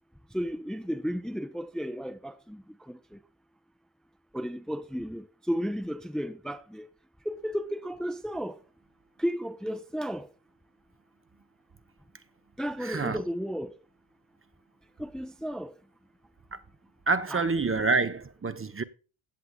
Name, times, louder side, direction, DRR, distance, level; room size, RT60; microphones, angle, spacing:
voice 1, 0.3-3.2 4.3-6.9 7.2-8.6 9.2-10.3 12.6-13.7 15.0-15.7 17.3-17.5, equal, ahead, 0.7 m, -33 dB
voice 2, 12.8-13.2 17.1-18.8, right 3 dB, 30° right, 0.8 m, -27 dB
16.0 x 7.5 x 2.3 m
cardioid pair, 95°, 46 cm